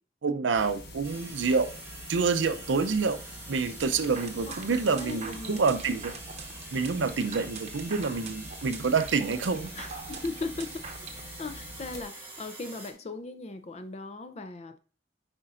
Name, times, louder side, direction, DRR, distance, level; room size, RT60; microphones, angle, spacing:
voice 1, 0.2-1.7 2.1-3.2 3.5-6.1 6.7-9.7, right 4 dB, 85° right, 0.6 m, -27 dB
sound 1, 0.5-12.0, left 1 dB, 60° left, 1.3 m, -46 dB
sound 2, 1.0-12.9, right 3 dB, 10° right, 1.4 m, -46 dB
sound 3, 3.8-11.2, right 5 dB, 35° right, 0.8 m, -43 dB
voice 2, 5.0-5.6 7.2-7.4 9.8-14.8, left 3 dB, 35° left, 0.5 m, -38 dB
9.7 x 5.2 x 2.5 m
head